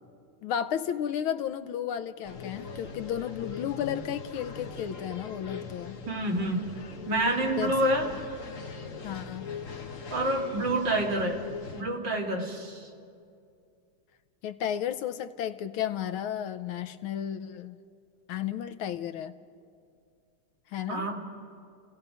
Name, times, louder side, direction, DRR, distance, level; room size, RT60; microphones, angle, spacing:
voice 1, 0.4-6.0 7.6-7.8 9.0-9.5 14.4-17.8 18.3-19.3 20.7-21.1, left 9 dB, 85° left, 9 dB, 1.5 m, -33 dB
sound 1, 2.2-11.8, left 5 dB, 45° left, 1.5 m, -41 dB
voice 2, 6.1-6.7 7.1-8.1 10.1-11.4 11.7-12.9 20.9-21.2, right 1 dB, 60° right, 0 dB, 2.8 m, -28 dB
30.0 x 17.0 x 5.6 m, 2.4 s
omnidirectional pair, 2.3 m